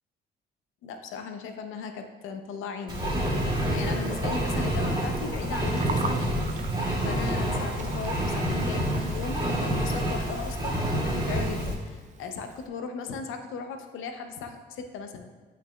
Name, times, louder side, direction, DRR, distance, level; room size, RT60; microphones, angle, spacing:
voice 1, 0.8-6.4 7.0-15.3, left 5 dB, 85° left, 6 dB, 0.6 m, -37 dB
Engine, 2.9-11.7, equal, 20° right, 1.7 m, -28 dB
Gurgling, 5.5-12.7, right 5 dB, 35° right, 0.4 m, -41 dB
8.3 x 5.9 x 2.3 m, 1.4 s
cardioid pair, 90°, 20 cm